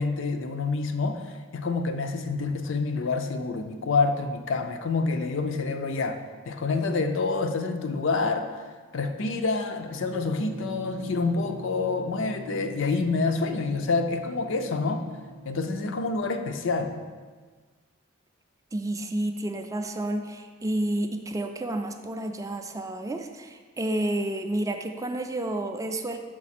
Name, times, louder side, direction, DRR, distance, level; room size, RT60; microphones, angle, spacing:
voice 1, 0.0-8.5 8.9-15.0 15.4-17.0, left 3 dB, 70° left, 6 dB, 0.5 m, -27 dB
sound 1, 9.9-16.6, right 1 dB, 70° right, 0.5 m, -44 dB
voice 2, 18.7-26.2, right 1 dB, 15° right, 5 dB, 0.4 m, -30 dB
6.0 x 4.8 x 4.2 m, 1.5 s
head